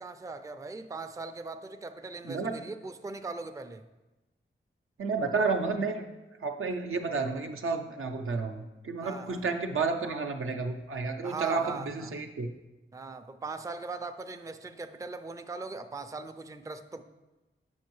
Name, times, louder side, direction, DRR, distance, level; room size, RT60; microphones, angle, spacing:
voice 1, 0.0-3.8 9.0-9.4 11.2-12.1 12.9-17.0, right 3 dB, 15° right, 0.4 m, -40 dB
voice 2, 2.2-2.6 5.0-6.0 6.4-12.5, right 4 dB, 75° right, 0.6 m, -31 dB
7.2 x 5.2 x 3.1 m
cardioid pair, 55°, 21 cm